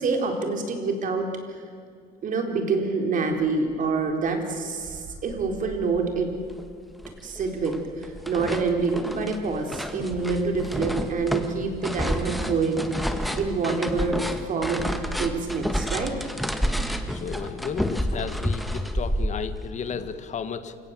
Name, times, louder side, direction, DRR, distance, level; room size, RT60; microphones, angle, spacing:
voice 1, 0.0-1.6 2.2-6.3 7.2-12.9 13.4-14.2 14.5-14.8 15.2-16.2, right 4 dB, 50° right, 4 dB, 4.2 m, -26 dB
sound 1, 3.3-17.6, right 2 dB, 35° right, 6.1 m, -44 dB
sound 2, 6.6-6.7 7.0-7.8 8.0-19.7, equal, ahead, 1.8 m, -29 dB
voice 2, 17.1-20.8, left 6 dB, 45° left, 11 dB, 1.6 m, -33 dB
28.0 x 17.5 x 7.8 m, 2.3 s
cardioid pair, 110°, 17 cm